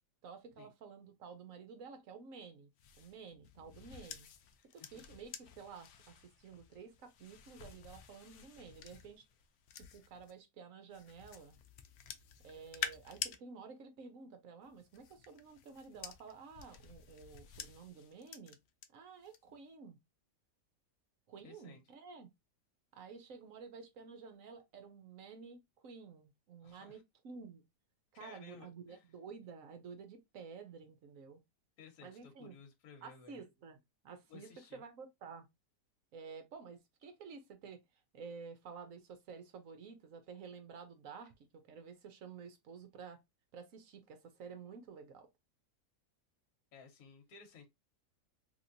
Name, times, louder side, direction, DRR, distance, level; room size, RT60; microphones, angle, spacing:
voice 1, 0.2-2.7 3.0-4.3 4.7-9.3 9.7-11.5 12.4-18.6 18.9-20.0 21.3-22.3 22.9-27.0 27.2-27.6 28.1-31.4 32.0-32.5 33.0-33.8 34.0-35.5 36.1-37.8 38.1-43.2 43.5-45.3, right 5 dB, 60° right, 1.0 m, -51 dB
sound 1, 2.8-10.3 10.9-13.4 14.6-18.9 19.2-19.6, left 8 dB, 90° left, 0.6 m, -49 dB
voice 2, 4.6-5.0 21.4-21.8 26.6-27.0 28.1-29.0 31.8-33.4 34.3-34.8 46.7-47.7, left 5 dB, 65° left, 1.3 m, -57 dB
3.4 x 2.9 x 2.5 m
omnidirectional pair, 1.8 m